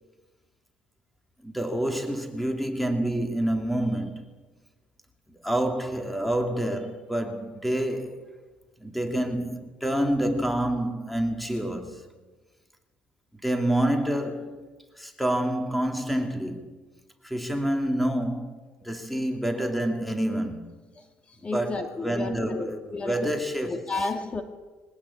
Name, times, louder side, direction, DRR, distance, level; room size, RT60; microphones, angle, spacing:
voice 1, 1.4-4.2 5.4-8.1 8.8-12.0 13.4-14.7 15.0-16.7 17.2-20.8 21.5-23.9, right 1 dB, ahead, 2.7 m, -28 dB
voice 2, 21.4-23.3 23.7-24.4, left 3 dB, 30° left, 2.3 m, -32 dB
22.5 x 17.0 x 8.8 m
cardioid pair, 120°, 4 cm